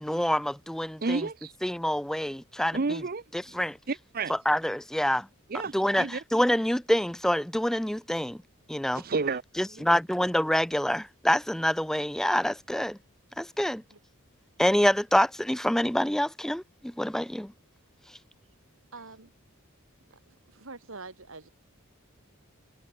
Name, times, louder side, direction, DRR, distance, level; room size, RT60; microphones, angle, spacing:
voice 1, 0.0-1.2 1.6-2.8 3.6-3.8 4.5-5.3 5.7-8.4 8.7-9.0 9.6-13.0 13.4-13.8 14.6-17.5, equal, ahead, 0.4 m, -26 dB
voice 2, 1.0-1.5 2.7-3.6 3.9-4.3 5.5-6.2 8.9-9.4 9.8-9.9, right 4 dB, 45° right, 0.7 m, -31 dB
voice 3, 18.9-19.3 20.3-21.5, right 3 dB, 65° right, 2.2 m, -45 dB
head